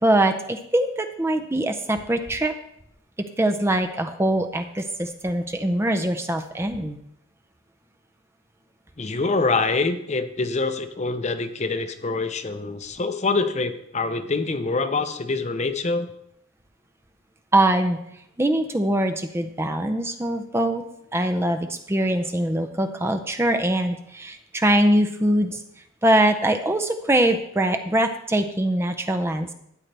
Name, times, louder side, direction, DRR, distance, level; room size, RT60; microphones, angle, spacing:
voice 1, 0.0-2.5 3.2-7.0 17.5-18.0 18.4-20.8 21.1-25.6 26.0-29.5, right 1 dB, 10° right, 6 dB, 0.5 m, -22 dB
voice 2, 9.0-16.1, left 3 dB, 35° left, 9 dB, 0.6 m, -25 dB
13.0 x 8.9 x 3.3 m, 0.75 s
head